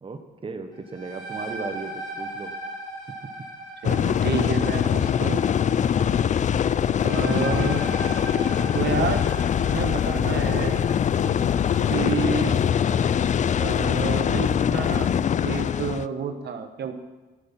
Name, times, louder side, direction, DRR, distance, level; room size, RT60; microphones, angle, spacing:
voice 1, 0.0-2.5 3.8-3.9 11.2-11.6, right 4 dB, 25° right, 7 dB, 1.0 m, -36 dB
sound 1, 0.7-12.2, right 2 dB, 20° left, 2.7 m, -38 dB
sound 2, 3.8-16.1, left 8 dB, 40° left, 0.4 m, -23 dB
voice 2, 3.8-5.4 7.0-7.8 8.7-9.3 9.6-10.8 11.9-12.6 13.6-15.1 15.4-16.9, right 6 dB, 55° right, 7 dB, 1.2 m, -29 dB
11.0 x 9.3 x 5.8 m, 1.2 s
cardioid pair, 90°, 20 cm